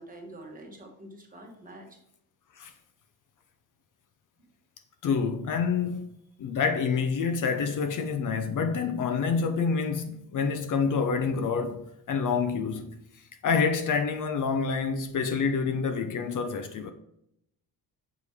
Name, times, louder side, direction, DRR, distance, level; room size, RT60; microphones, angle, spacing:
voice 1, 0.0-2.0, right 1 dB, 20° right, 1.2 m, -46 dB
voice 2, 5.0-6.1 6.4-13.0 13.4-16.9, left 5 dB, 50° left, 0.6 m, -27 dB
6.7 x 4.9 x 3.5 m
cardioid pair, 175°, 39 cm